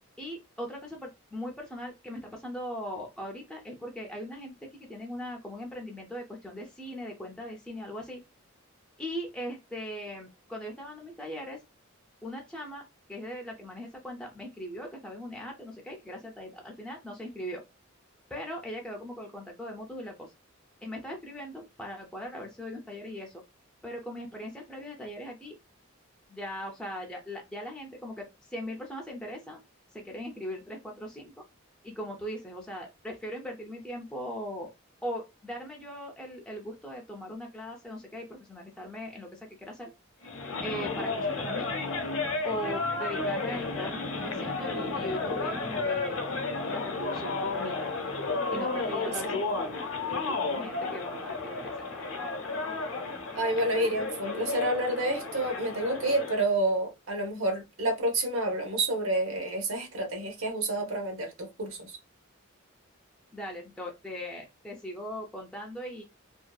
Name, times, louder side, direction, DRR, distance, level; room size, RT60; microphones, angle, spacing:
voice 1, 0.2-8.2 9.0-11.6 12.2-17.6 18.3-20.3 20.8-23.4 23.8-25.6 26.3-29.6 29.9-31.3 31.8-34.7 35.0-39.9 40.6-41.7 42.4-46.2 46.7-47.8 48.5-49.8 50.2-51.7 63.3-66.0, equal, 5° left, 0.4 m, -39 dB
sound 1, 40.2-56.5, left 3 dB, 70° left, 0.6 m, -32 dB
voice 2, 49.0-49.4 53.3-62.0, right 1 dB, 65° right, 0.9 m, -29 dB
2.6 x 2.3 x 2.2 m
head